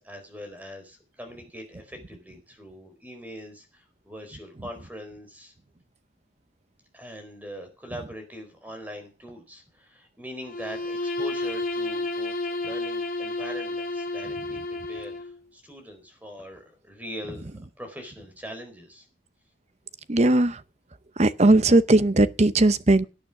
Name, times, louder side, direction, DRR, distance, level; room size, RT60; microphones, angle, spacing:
voice 1, 0.0-5.5 6.9-14.6 14.9-19.1, equal, 10° right, 4.5 m, -42 dB
Bowed string instrument, 10.4-15.3, left 2 dB, 50° left, 2.2 m, -31 dB
voice 2, 20.1-20.6 21.2-23.1, right 2 dB, 35° right, 0.8 m, -18 dB
17.5 x 9.6 x 6.0 m
head